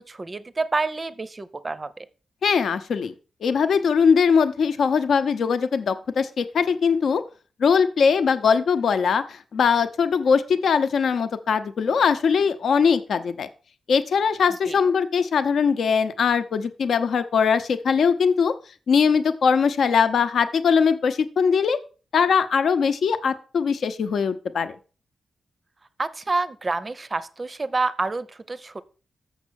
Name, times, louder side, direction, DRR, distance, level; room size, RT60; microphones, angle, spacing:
voice 1, 0.1-2.1 14.7-14.8 26.0-28.8, right 3 dB, 20° right, 15 dB, 0.6 m, -28 dB
voice 2, 2.4-3.1 3.4-7.2 7.6-13.5 13.9-18.5 18.9-21.8 22.1-24.7, left 6 dB, 65° left, 10 dB, 0.8 m, -21 dB
7.3 x 6.2 x 6.3 m, 0.36 s
wide cardioid pair, 175°, 0 cm